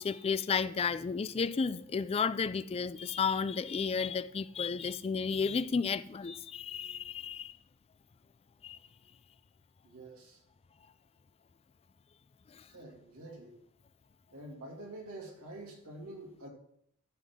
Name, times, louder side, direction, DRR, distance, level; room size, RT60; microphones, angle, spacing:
voice 1, 0.0-7.6 8.6-8.8 12.5-12.7, left 5 dB, 25° left, 0.3 m, -32 dB
voice 2, 9.8-10.4 12.7-13.5 14.3-16.5, right 1 dB, 85° right, 2.4 m, -47 dB
13.5 x 5.8 x 3.6 m
head